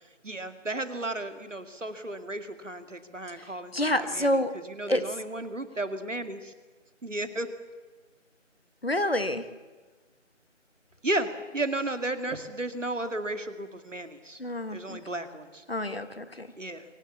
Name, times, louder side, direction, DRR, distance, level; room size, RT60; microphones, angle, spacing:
voice 1, 0.2-6.5 7.0-7.5 11.0-14.4 14.7-15.6 16.6-16.8, right 2 dB, 70° right, 9 dB, 2.4 m, -34 dB
voice 2, 3.7-4.5 4.9-5.1 8.8-9.5 14.4-15.0 15.7-16.5, left 1 dB, 50° left, 11 dB, 1.5 m, -28 dB
23.0 x 17.5 x 8.4 m, 1.3 s
figure-of-eight pair, 175°, 38 cm